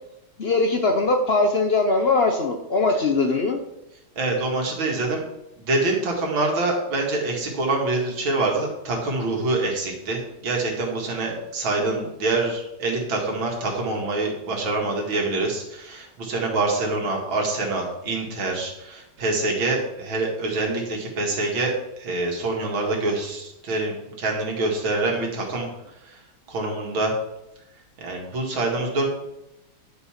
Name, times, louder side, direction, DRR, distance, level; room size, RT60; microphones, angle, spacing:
voice 1, 0.4-3.6 11.9-12.0, left 3 dB, 60° left, 4 dB, 0.6 m, -21 dB
voice 2, 4.2-5.2 5.6-25.7 26.0-26.2 26.5-27.1 28.0-29.1, right 2 dB, 80° right, 0 dB, 2.8 m, -25 dB
10.5 x 5.4 x 5.9 m, 0.88 s
omnidirectional pair, 2.2 m